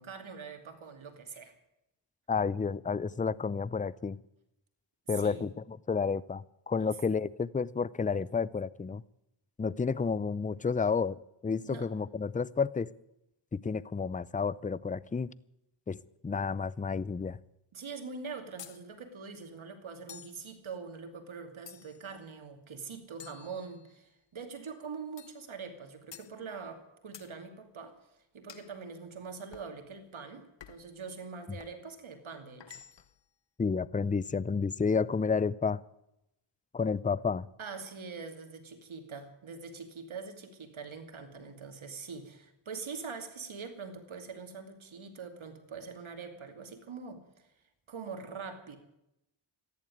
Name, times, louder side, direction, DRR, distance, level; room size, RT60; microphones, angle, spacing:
voice 1, 0.0-1.5 5.1-5.5 6.8-6.9 11.6-11.9 17.7-27.9 28.3-32.8 37.6-47.5 47.9-48.8, right 5 dB, 70° right, 6 dB, 2.7 m, -43 dB
voice 2, 2.3-4.2 5.1-9.0 9.6-11.2 11.4-12.9 13.5-15.3 15.9-16.0 16.2-17.4 33.6-35.8 36.7-37.5, left 5 dB, 15° left, 21 dB, 0.5 m, -31 dB
sound 1, 18.6-18.8 20.1-20.4 21.7-22.1 23.2-24.1 25.2-25.4 26.1-26.3 27.1-27.3 28.5-28.7 29.5-29.7 30.6-30.9 31.6-31.8 32.6-33.2, left 8 dB, 60° left, 1.0 m, -51 dB
14.0 x 11.0 x 9.3 m, 0.85 s
cardioid pair, 45°, 49 cm